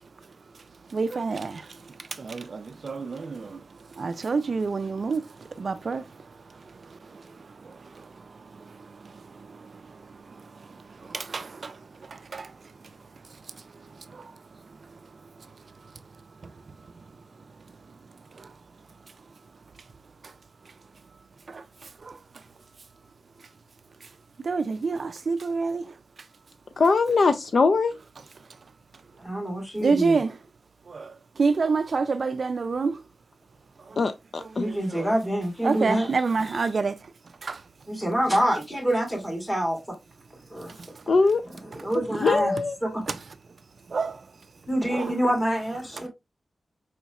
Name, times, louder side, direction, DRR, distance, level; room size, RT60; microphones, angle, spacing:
voice 1, 0.9-1.6 2.2-3.6 4.0-5.2 5.6-6.0 11.1-11.7 12.3-12.5 21.5-21.6 22.0-22.1 24.4-25.8 29.8-30.3 30.9-31.1 31.4-33.0 34.6-35.1 35.6-37.0 37.4-37.6 43.9-44.2 44.9-45.1, right 4 dB, 50° right, 0.3 m, -27 dB
voice 2, 26.8-27.9 34.0-34.7 41.1-41.4 41.9-42.8, left 4 dB, 55° left, 0.3 m, -22 dB
voice 3, 29.2-30.2 34.6-36.2 36.4-36.6 37.9-40.0 40.5-40.7 41.8-42.5 42.8-43.0 44.7-46.1, equal, 10° left, 2.2 m, -26 dB
4.9 x 4.0 x 2.3 m
wide cardioid pair, 155°, 0 cm